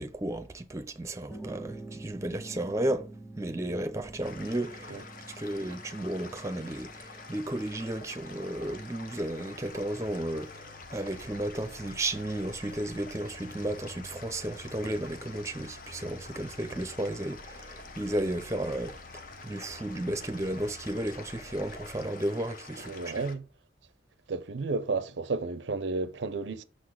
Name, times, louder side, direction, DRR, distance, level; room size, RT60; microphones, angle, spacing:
voice 1, 0.0-3.1 3.4-5.0 5.4-19.0 19.4-23.2, right 1 dB, 15° right, 0.6 m, -33 dB
sound 1, 1.3-9.0, right 2 dB, 15° left, 1.4 m, -47 dB
sound 2, 4.2-23.4, left 3 dB, 45° left, 0.9 m, -47 dB
sound 3, 9.6-22.0, left 1 dB, 75° left, 0.8 m, -51 dB
voice 2, 22.8-23.5 24.3-26.6, right 3 dB, 75° right, 0.5 m, -32 dB
6.4 x 3.9 x 6.3 m
head